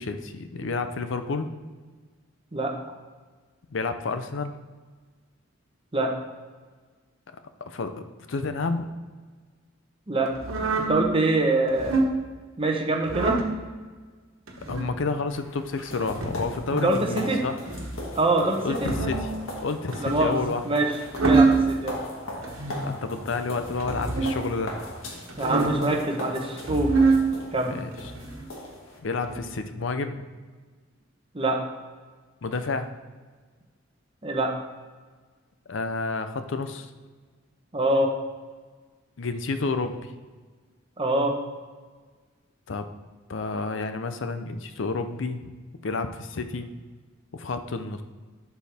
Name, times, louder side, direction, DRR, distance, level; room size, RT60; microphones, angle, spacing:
voice 1, 0.0-1.5 3.7-4.5 7.6-8.9 14.7-17.6 18.6-19.3 19.6-20.6 22.8-24.7 27.6-28.1 29.0-30.2 32.4-32.9 35.7-36.9 39.2-40.1 42.7-42.9 43.3-45.5 45.8-46.7 47.3-48.0, left 3 dB, 65° left, 9 dB, 0.6 m, -30 dB
voice 2, 10.1-10.5 10.9-12.0 12.6-13.4 16.8-17.4 18.1-18.9 20.0-20.4 20.6-22.0 25.4-27.0 27.5-27.7 31.3-31.6 34.2-34.5 37.7-38.1 41.0-41.4, right 2 dB, 25° right, 2 dB, 0.9 m, -24 dB
sound 1, 10.4-11.0 11.7-12.1 13.0-13.5 14.5-14.9 15.9-16.4 17.6-18.0 18.7-19.3 19.9-20.4 20.9-21.7 22.4-22.9 23.8-24.4 25.3-25.9 26.6-27.2 27.9-28.4 29.2-29.4, right 3 dB, 90° right, 1.2 m, -25 dB
sound 2, 15.3-29.0, left 1 dB, 85° left, 1.6 m, -39 dB
11.5 x 4.5 x 3.5 m, 1.4 s
head